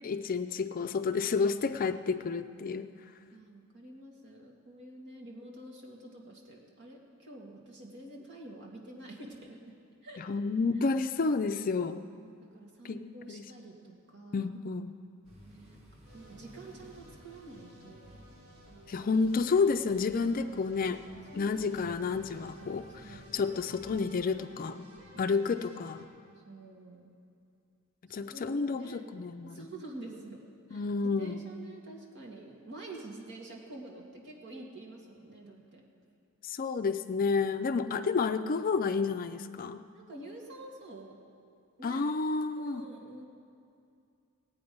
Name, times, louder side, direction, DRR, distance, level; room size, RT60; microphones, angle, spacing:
voice 1, 0.0-2.9 10.2-12.0 12.8-13.5 14.3-14.9 18.9-21.0 21.4-24.9 25.2-26.1 28.1-29.7 30.7-31.4 36.4-39.8 41.8-42.8, left 4 dB, 40° left, 9 dB, 0.4 m, -30 dB
voice 2, 3.3-9.6 10.0-10.2 12.1-14.5 15.5-15.8 16.1-18.2 21.3-21.6 23.0-23.4 25.0-25.3 26.5-27.1 28.1-29.1 29.4-30.4 30.7-30.9 31.2-35.8 39.9-41.2 41.8-42.0 42.6-43.3, right 2 dB, 55° right, -2 dB, 2.1 m, -48 dB
sound 1, 15.2-24.2, equal, 35° right, 2.8 m, -56 dB
sound 2, 16.0-26.0, equal, 85° right, 3.4 m, -55 dB
18.5 x 8.6 x 5.3 m, 2.4 s
head